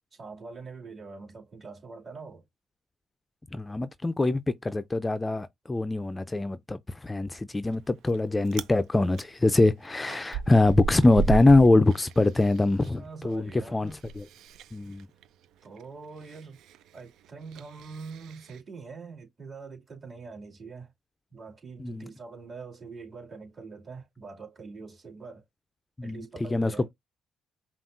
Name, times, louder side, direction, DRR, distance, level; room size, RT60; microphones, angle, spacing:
voice 1, 0.1-2.4 13.0-13.8 15.6-16.6 16.9-20.9 21.3-25.4 26.0-26.9, right 4 dB, 35° right, 2.5 m, -44 dB
voice 2, 3.5-14.3 14.7-15.1 21.8-22.1 26.0-26.3 26.5-26.9, left 2 dB, 20° left, 0.4 m, -23 dB
Chewing mastication, 7.7-8.2 8.4-8.7 9.1-12.9 13.2-18.6, right 6 dB, 85° right, 0.4 m, -36 dB
5.5 x 2.3 x 2.6 m
cardioid pair, 90°, 0 cm